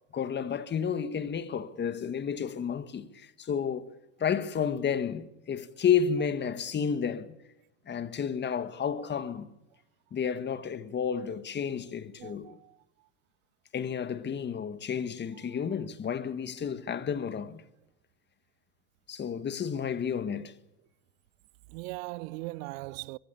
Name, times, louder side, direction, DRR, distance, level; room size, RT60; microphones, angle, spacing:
voice 1, 0.1-3.9 4.2-7.3 7.9-9.5 10.1-12.6 13.7-17.6 19.1-20.5, left 7 dB, 25° left, 1.7 m, -31 dB
voice 2, 12.2-12.8 21.7-23.2, right 22 dB, 75° right, 0.8 m, -39 dB
24.0 x 21.5 x 7.0 m
supercardioid pair, 120°, 40 cm